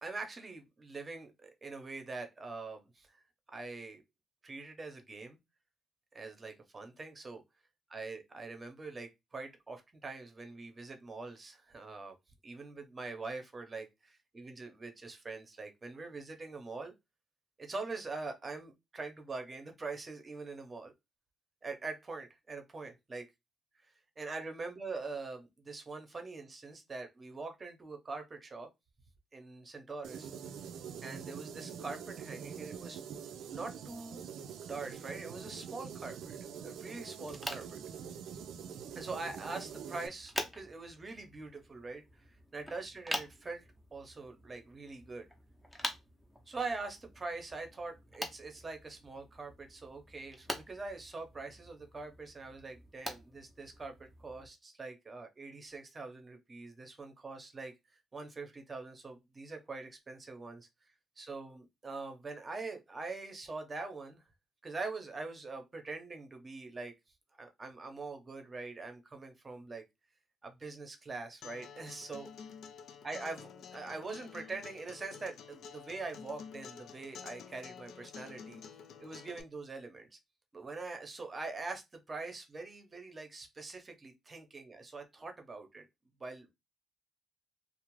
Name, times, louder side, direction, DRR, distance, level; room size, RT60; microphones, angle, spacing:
voice 1, 0.0-3.2 3.5-4.0 4.4-5.4 6.1-7.4 7.9-12.2 12.4-16.9 17.6-20.9 21.6-23.2 24.2-28.7 29.3-30.3 31.0-33.0 33.5-34.3 34.6-37.8 38.9-42.0 42.5-43.6 43.9-45.3 46.5-57.7 58.1-60.7 61.2-64.2 64.6-66.9 67.4-69.8 70.4-72.3 73.0-78.6 79.0-80.2 80.5-85.8 86.2-86.5, right 3 dB, 30° right, 0.7 m, -43 dB
sound 1, 30.0-40.1, right 7 dB, 80° right, 0.3 m, -45 dB
sound 2, 37.2-54.5, equal, 5° left, 0.6 m, -46 dB
Acoustic guitar, 71.4-79.4, left 6 dB, 70° left, 0.3 m, -50 dB
2.4 x 2.0 x 3.0 m
cardioid pair, 90°, 0 cm